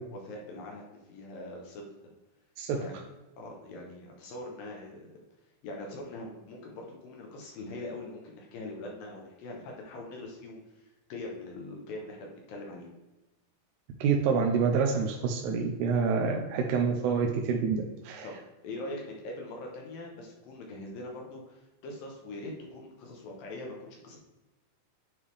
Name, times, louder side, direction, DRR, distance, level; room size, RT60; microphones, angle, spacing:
voice 1, 0.0-1.9 2.7-3.0 3.4-5.2 5.6-12.9 18.2-18.4 18.6-24.2, left 2 dB, 70° left, 0 dB, 2.2 m, -42 dB
voice 2, 14.0-18.3, right 5 dB, 80° right, 1 dB, 2.5 m, -27 dB
9.7 x 3.5 x 3.2 m, 1.1 s
omnidirectional pair, 5.0 m